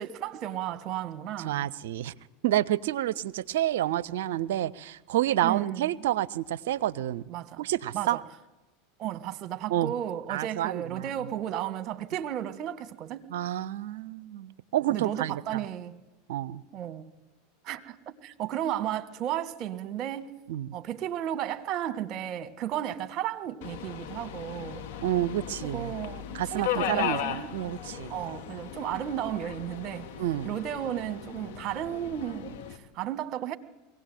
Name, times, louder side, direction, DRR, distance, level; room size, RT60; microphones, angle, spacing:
voice 1, 0.0-1.7 5.4-5.9 7.3-7.6 7.9-8.2 9.0-13.3 14.9-16.0 16.7-17.1 17.6-20.3 20.7-24.9 25.6-27.5 28.1-30.1 30.4-33.6, right 11 dB, 45° right, 1.6 m, -34 dB
voice 2, 1.4-2.1 2.4-7.2 7.6-8.2 9.7-9.9 10.3-11.1 13.3-15.6 16.3-16.6 20.5-20.7 25.0-25.9 26.3-28.1 30.2-30.5, right 13 dB, 70° right, 0.7 m, -29 dB
Subway metro underground, 23.6-32.8, left 9 dB, 60° left, 2.0 m, -37 dB
22.5 x 17.0 x 9.2 m
hypercardioid pair, 85°, 0 cm